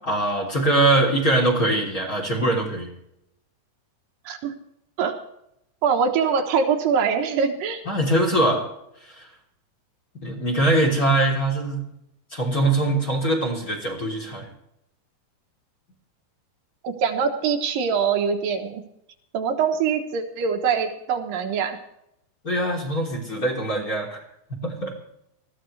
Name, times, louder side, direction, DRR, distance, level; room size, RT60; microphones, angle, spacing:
voice 1, 0.0-2.9 7.9-8.7 9.2-9.3 10.2-11.8 12.3-14.5 22.4-24.2 24.6-24.9, right 1 dB, 25° left, 0 dB, 3.5 m, -22 dB
voice 2, 5.8-7.8 16.8-18.8 19.3-21.8, right 6 dB, 75° right, 4 dB, 2.9 m, -23 dB
20.5 x 15.0 x 3.3 m, 0.79 s
omnidirectional pair, 4.0 m